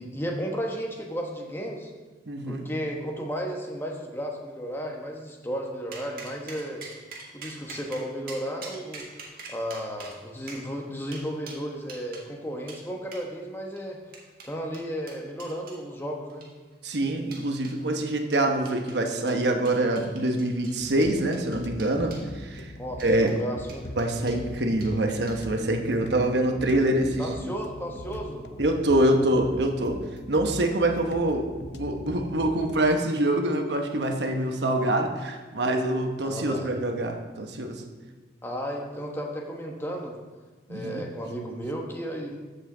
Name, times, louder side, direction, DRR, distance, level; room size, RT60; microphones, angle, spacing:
voice 1, 0.0-1.9 2.4-6.8 7.3-9.1 9.5-14.0 14.4-16.4 22.8-23.9 27.2-28.5 36.2-36.7 38.4-40.1 40.7-42.4, equal, 15° left, 0 dB, 1.1 m, -34 dB
voice 2, 2.3-2.6 16.8-22.7 23.0-23.3 24.0-27.5 28.6-30.0 30.3-37.8 40.7-41.0, right 1 dB, 70° right, 4 dB, 1.0 m, -25 dB
sound 1, 5.9-12.3 12.7-12.8 13.1-13.3 13.8-15.8 16.3-16.8 17.3-17.8 18.3-19.0 19.3-22.3 22.9-23.4 23.7-24.4 24.8-24.9 25.3-25.6, right 3 dB, 55° right, 1.7 m, -44 dB
sound 2, 20.8-32.9, left 1 dB, 70° left, 0.7 m, -41 dB
14.0 x 5.7 x 3.8 m, 1.3 s
head